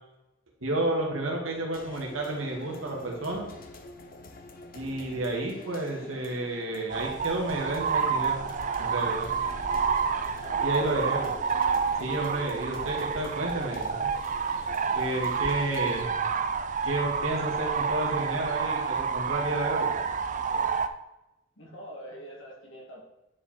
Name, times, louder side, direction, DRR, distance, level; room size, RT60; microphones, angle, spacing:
voice 1, 0.6-3.5 4.7-8.4 8.8-9.3 10.6-11.3 12.0-14.1 15.0-16.2 16.8-19.9, right 2 dB, 85° right, 0 dB, 2.1 m, -31 dB
sound 1, 1.7-16.0, left 2 dB, 45° left, 0.8 m, -47 dB
sound 2, 6.9-20.9, right 6 dB, 40° right, 0.4 m, -29 dB
voice 2, 10.4-11.3 20.5-20.7 21.6-23.0, equal, 70° left, -3 dB, 2.7 m, -44 dB
9.7 x 5.0 x 4.5 m, 0.96 s
head